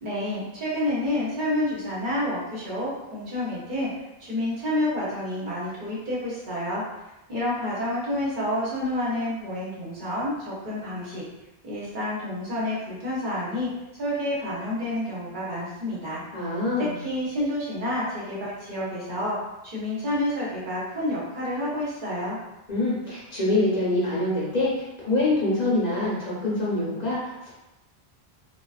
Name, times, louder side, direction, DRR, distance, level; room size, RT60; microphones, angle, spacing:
voice 1, 0.0-3.9 4.2-6.8 7.3-11.2 11.6-16.2 16.8-19.4 19.6-22.4, left 1 dB, 55° right, -7 dB, 0.9 m, -29 dB
voice 2, 16.3-17.0 22.7-27.5, left 2 dB, 45° left, -8 dB, 0.8 m, -25 dB
2.3 x 2.2 x 2.3 m, 0.97 s
omnidirectional pair, 1.0 m